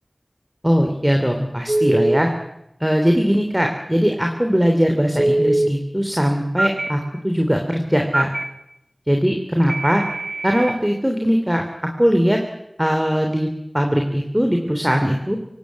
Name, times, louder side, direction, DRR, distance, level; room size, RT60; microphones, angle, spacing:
voice 1, 0.6-2.3 2.8-8.3 9.1-10.0 10.4-11.6 12.0-12.4 12.8-13.5 13.7-15.4, equal, 15° right, 3 dB, 3.3 m, -20 dB
Telephone, 1.7-2.2 5.2-5.7 6.6-6.9 8.1-8.4 9.7-10.7, right 1 dB, 60° right, 1.7 m, -21 dB
24.5 x 17.5 x 9.5 m, 0.84 s
wide cardioid pair, 45°, 0 cm